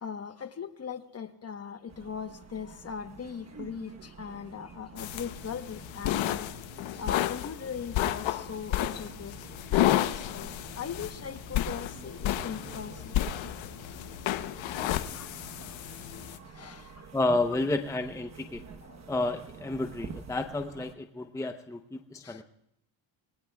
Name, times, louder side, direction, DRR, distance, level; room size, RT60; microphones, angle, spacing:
voice 1, 0.0-6.5 6.9-9.4 10.1-13.1 13.9-14.0 15.1-15.3 16.5-16.9 18.9-19.0 22.2-22.4, left 7 dB, 30° left, 1.0 m, -39 dB
sound 1, 1.9-20.9, right 5 dB, 35° right, 1.1 m, -49 dB
sound 2, 5.0-16.4, left 13 dB, 75° left, 0.9 m, -32 dB
voice 2, 17.1-18.6 19.1-22.4, left 2 dB, 5° left, 0.7 m, -31 dB
28.0 x 20.0 x 2.3 m
cardioid pair, 125°, 47 cm